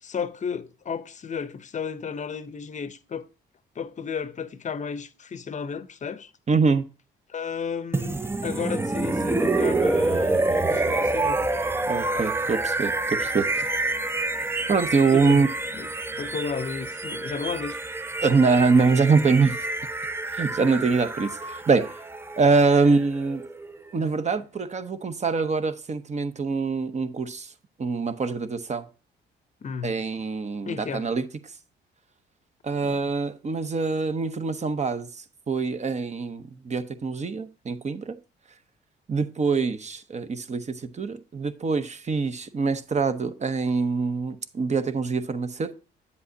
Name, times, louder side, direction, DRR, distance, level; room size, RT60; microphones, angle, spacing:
voice 1, 0.0-3.3 3.8-6.3 7.3-11.4 15.1-15.4 15.7-15.9 16.2-17.8 29.6-30.0 30.7-31.1 32.8-33.1, left 6 dB, 40° left, 0.7 m, -33 dB
voice 2, 6.5-6.9 11.9-13.7 14.7-15.5 18.2-19.7 20.3-22.0 22.4-23.4 23.9-27.5 27.8-28.9 29.8-31.3 32.6-38.2 39.1-45.8, right 4 dB, 35° right, 0.8 m, -24 dB
sound 1, 7.9-23.8, right 2 dB, 10° right, 0.5 m, -27 dB
8.2 x 7.6 x 2.7 m
cardioid pair, 90°, 20 cm